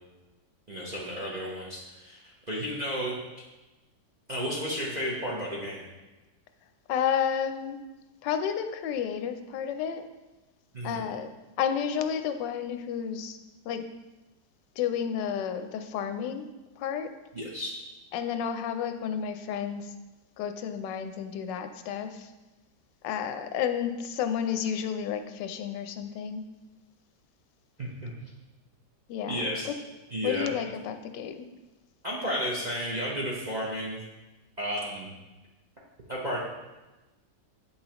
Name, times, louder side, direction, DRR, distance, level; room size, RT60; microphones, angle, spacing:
voice 1, 0.7-2.2 2.5-3.2 4.3-5.8 10.7-11.0 17.3-17.7 27.8-28.1 29.3-29.7 30.1-30.6 32.0-34.0 34.6-35.1 36.1-36.4, equal, 45° right, -4 dB, 0.5 m, -32 dB
voice 2, 6.9-7.8 8.2-10.0 10.8-11.3 11.6-13.4 13.7-13.9 14.8-16.5 16.8-17.1 18.1-19.9 20.4-22.3 23.0-26.4 29.1-29.7 30.2-31.5, left 8 dB, 90° left, 8 dB, 1.2 m, -31 dB
8.2 x 5.5 x 2.9 m, 1.1 s
omnidirectional pair, 1.9 m